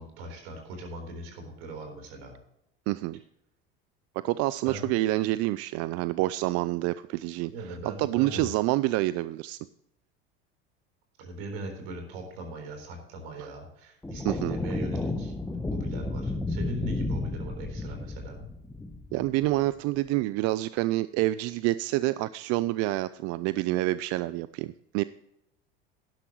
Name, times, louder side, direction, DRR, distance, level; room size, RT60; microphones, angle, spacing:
voice 1, 0.0-2.4 4.7-4.9 7.5-8.5 11.2-15.3 15.7-18.5, right 2 dB, 70° right, 5 dB, 4.0 m, -40 dB
voice 2, 2.9-3.2 4.2-9.6 13.4-13.5 14.2-14.6 19.1-25.0, right 17 dB, 55° right, 16 dB, 0.4 m, -28 dB
sound 1, 14.0-19.7, left 2 dB, 5° left, 1.1 m, -32 dB
11.5 x 11.5 x 3.1 m, 0.79 s
hypercardioid pair, 85°, 31 cm